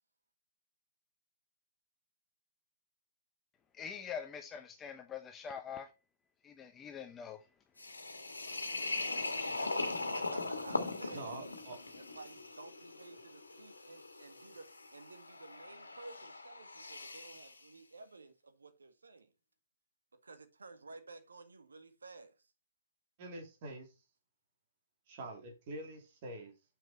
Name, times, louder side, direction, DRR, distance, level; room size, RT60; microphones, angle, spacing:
voice 1, 3.7-5.9 6.4-7.4, left 7 dB, 15° left, 0.8 m, -44 dB
sound 1, 7.8-17.6, left 2 dB, 90° left, 1.6 m, -40 dB
voice 2, 9.5-11.4 12.2-14.6 14.9-18.3 18.6-19.3 20.2-22.3, right 3 dB, 80° right, 1.6 m, -53 dB
voice 3, 11.1-11.8 23.2-23.9 25.1-26.5, right 2 dB, 45° right, 2.8 m, -45 dB
6.7 x 6.2 x 4.2 m
figure-of-eight pair, 130°, 0 cm